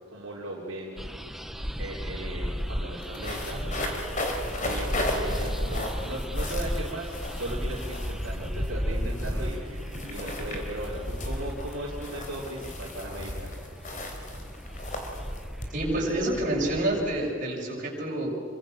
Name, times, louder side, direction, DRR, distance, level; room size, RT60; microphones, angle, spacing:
voice 1, 0.1-1.0 1.8-3.7 4.6-13.5, right 1 dB, 65° right, -4 dB, 3.7 m, -37 dB
sound 1, 1.0-17.3, equal, ahead, 0.9 m, -36 dB
sound 2, 1.7-1.8 2.0-16.4, left 1 dB, 35° left, 3.6 m, -35 dB
voice 2, 15.7-18.3, right 1 dB, 40° right, -3 dB, 6.6 m, -28 dB
27.5 x 25.0 x 6.6 m, 2.2 s
head